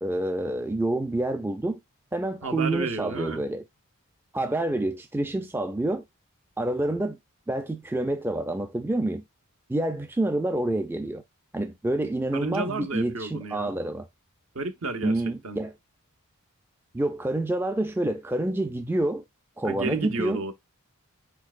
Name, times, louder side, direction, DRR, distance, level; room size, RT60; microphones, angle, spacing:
voice 1, 0.0-1.8 2.1-3.6 4.3-6.0 6.6-7.2 7.5-9.2 9.7-11.2 11.5-14.1 15.0-15.7 16.9-19.2 19.6-20.4, right 1 dB, 10° right, 0.3 m, -27 dB
voice 2, 2.4-3.4 12.3-13.8 14.5-15.1 15.4-15.6 19.6-20.5, right 3 dB, 65° right, 0.9 m, -32 dB
4.5 x 4.3 x 2.4 m
head